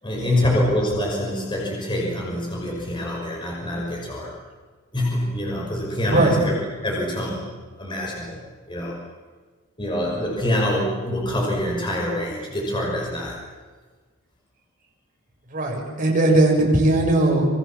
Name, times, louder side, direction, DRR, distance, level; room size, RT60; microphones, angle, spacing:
voice 1, 0.0-4.3 4.9-6.5 6.8-7.5 7.8-8.4 8.7-9.1 9.8-13.4, left 1 dB, 20° left, -2 dB, 5.7 m, -25 dB
voice 2, 6.1-6.4 15.5-17.5, right 2 dB, 40° right, 0 dB, 7.4 m, -19 dB
27.5 x 24.0 x 7.5 m, 1.4 s
head